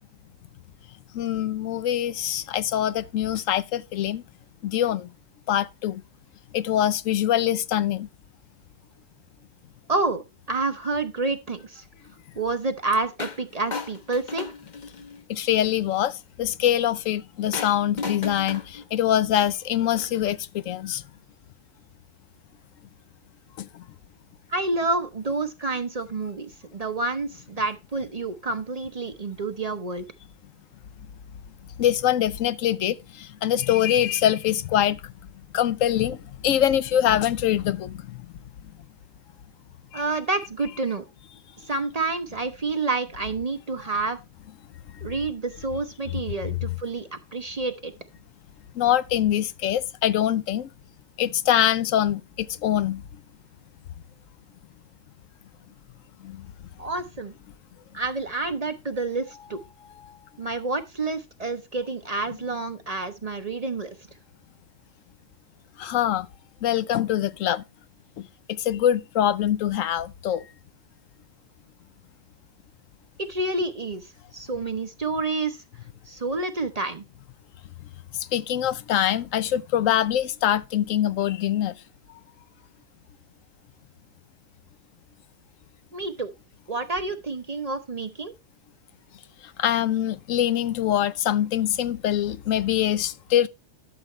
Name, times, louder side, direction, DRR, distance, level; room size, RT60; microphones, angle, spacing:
voice 1, 1.1-4.2 4.6-5.1 5.5-6.0 6.5-8.1 15.3-21.0 23.6-23.8 31.8-35.1 35.5-38.3 39.9-40.0 48.7-50.7 51.2-53.0 56.2-56.5 60.1-60.2 65.8-66.3 66.6-67.6 68.2-70.4 78.1-81.7 89.6-93.5, left 11 dB, 80° left, 1.0 m, -24 dB
voice 2, 9.9-11.9 12.4-14.5 24.5-30.1 39.9-41.0 41.7-44.2 45.0-47.9 56.8-57.3 57.9-59.6 60.4-64.0 73.2-75.6 76.1-77.0 85.9-86.3 86.7-88.3, right 3 dB, 35° right, 0.8 m, -29 dB
sound 1, 13.2-13.4 13.7-15.2 17.5-20.3, left 4 dB, 40° left, 0.9 m, -35 dB
12.0 x 6.9 x 3.1 m
omnidirectional pair, 1.3 m